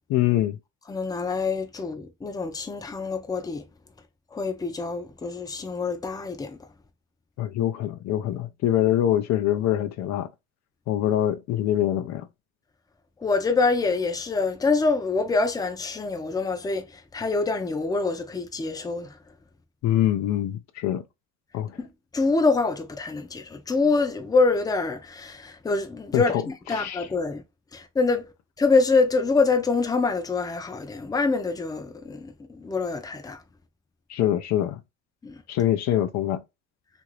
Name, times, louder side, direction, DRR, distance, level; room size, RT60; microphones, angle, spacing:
voice 1, 0.1-0.6 7.4-10.3 10.9-12.3 19.8-21.0 21.5-21.8 26.1-26.4 26.7-27.1 34.1-34.8 35.5-36.4, left 12 dB, 65° left, 0.5 m, -24 dB
voice 2, 0.9-3.6 4.3-6.6 13.2-19.2 21.8-26.4 26.7-27.4 27.7-28.3 28.6-33.4 35.2-35.4, left 4 dB, 10° left, 0.5 m, -25 dB
2.8 x 2.6 x 3.0 m
cardioid pair, 120°, 30 cm